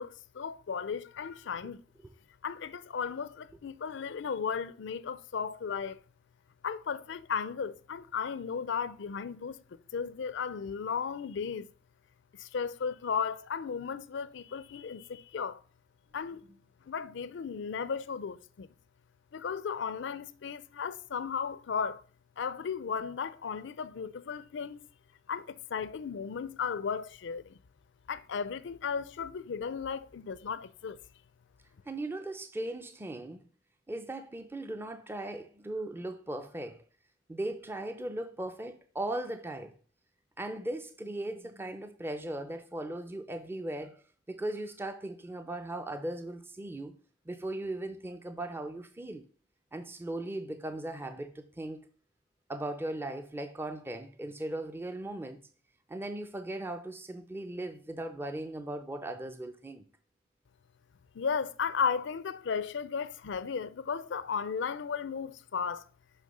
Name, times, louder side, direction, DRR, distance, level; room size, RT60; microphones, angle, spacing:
voice 1, 0.0-1.8 2.4-6.0 6.6-9.6 9.9-11.7 12.4-15.6 16.1-16.4 16.9-18.7 19.3-22.0 22.4-24.9 25.3-27.6 28.1-31.0 61.1-65.9, left 6 dB, 65° left, 0.4 m, -35 dB
voice 2, 31.9-33.4 33.9-36.8 37.3-39.7 40.4-44.0 44.3-47.0 47.3-49.2 49.7-51.8 52.5-55.4 55.9-59.9, right 1 dB, 10° right, 0.4 m, -38 dB
6.5 x 5.1 x 5.4 m
head